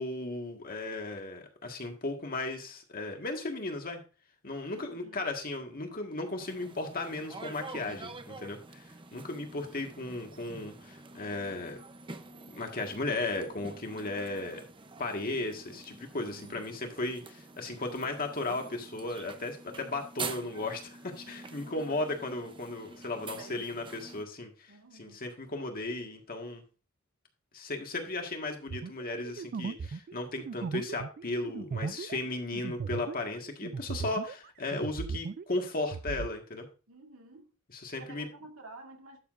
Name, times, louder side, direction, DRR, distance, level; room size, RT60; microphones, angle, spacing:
voice 1, 0.0-4.0 4.4-11.8 12.5-14.6 15.0-24.7 25.0-26.6 27.5-36.7 37.7-38.3, left 2 dB, 45° left, 1.7 m, -36 dB
voice 2, 4.7-5.3 16.2-16.7 21.6-22.1 23.1-23.8 24.7-25.3 36.9-37.5 37.9-39.2, right 2 dB, 80° right, 1.9 m, -51 dB
sound 1, 6.4-24.2, right 4 dB, 25° right, 0.7 m, -47 dB
sound 2, 28.7-34.5 34.7-36.3, right 5 dB, 45° right, 0.3 m, -37 dB
11.5 x 7.0 x 2.6 m
head